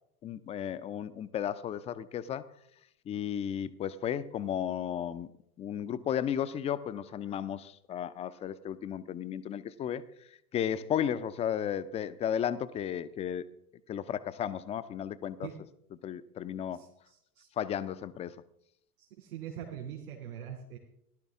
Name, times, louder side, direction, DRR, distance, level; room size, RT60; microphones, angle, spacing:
voice 1, 0.2-2.5 3.1-5.3 5.6-10.1 10.5-13.4 13.9-15.5 16.0-16.8 17.6-18.4, left 9 dB, 15° left, 0.4 m, -34 dB
voice 2, 16.7-17.5 19.0-20.8, right 9 dB, 70° right, 2.9 m, -43 dB
17.5 x 11.5 x 3.6 m
figure-of-eight pair, 80°, 46 cm